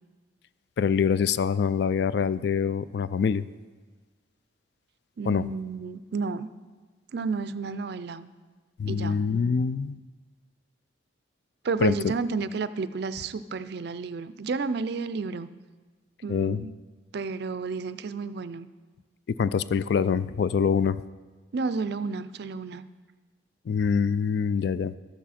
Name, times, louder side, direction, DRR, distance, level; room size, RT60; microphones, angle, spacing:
voice 1, 0.8-3.5 5.3-5.4 8.8-10.0 11.8-11.9 16.3-16.6 19.4-21.0 23.7-25.0, left 6 dB, 60° left, 16 dB, 0.3 m, -25 dB
voice 2, 5.2-6.5 7.1-8.3 8.9-9.2 11.6-15.5 16.2-16.7 17.1-18.7 21.5-22.9, right 4 dB, 55° right, 14 dB, 0.4 m, -31 dB
12.5 x 8.5 x 4.2 m, 1.3 s
head